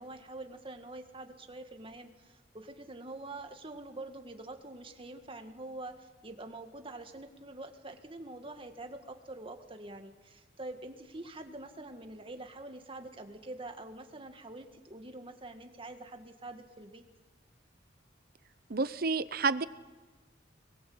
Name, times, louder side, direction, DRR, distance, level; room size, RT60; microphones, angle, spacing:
voice 1, 0.0-17.0, right 2 dB, 30° right, 6 dB, 1.9 m, -45 dB
voice 2, 18.7-19.7, right 4 dB, 55° right, 15 dB, 0.9 m, -29 dB
24.5 x 21.5 x 8.0 m, 1.2 s
head